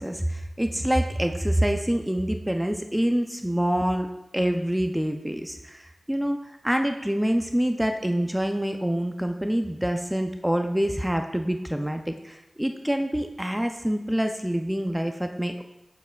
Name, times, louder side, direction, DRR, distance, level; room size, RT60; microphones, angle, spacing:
voice 1, 0.0-4.1 4.3-15.6, equal, 5° right, 5 dB, 0.3 m, -26 dB
7.2 x 6.5 x 2.2 m, 0.93 s
wide cardioid pair, 90°, 0 cm